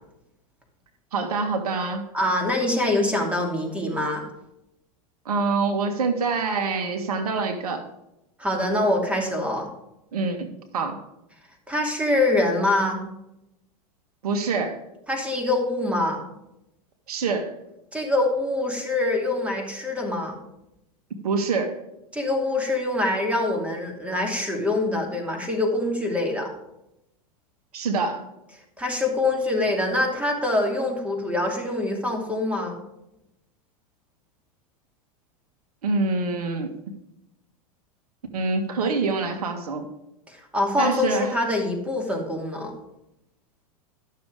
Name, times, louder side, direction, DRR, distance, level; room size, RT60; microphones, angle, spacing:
voice 1, 1.1-2.0 5.3-7.8 10.1-11.0 14.2-14.8 17.1-17.5 21.1-21.8 27.7-28.2 35.8-36.7 38.3-39.9 40.8-41.4, right 4 dB, 80° right, 6 dB, 1.8 m, -25 dB
voice 2, 2.1-4.2 8.4-9.7 11.7-13.0 15.1-16.2 17.9-20.4 22.1-26.5 28.8-32.8 40.3-42.7, left 2 dB, 5° right, 1 dB, 2.7 m, -24 dB
12.0 x 6.9 x 5.0 m, 0.87 s
hypercardioid pair, 110°, 19 cm